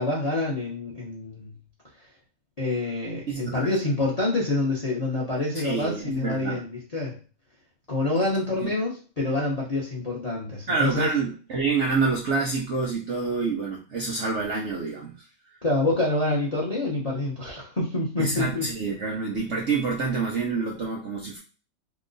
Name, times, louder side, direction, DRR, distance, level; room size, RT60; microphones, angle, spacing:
voice 1, 0.0-1.5 2.6-7.2 7.9-11.1 15.6-18.7, left 2 dB, 40° left, -3 dB, 0.5 m, -27 dB
voice 2, 3.3-3.7 5.6-6.6 8.6-8.7 10.7-15.1 18.2-21.4, right 4 dB, 60° right, -1 dB, 0.8 m, -27 dB
3.0 x 2.1 x 3.9 m, 0.35 s
omnidirectional pair, 1.9 m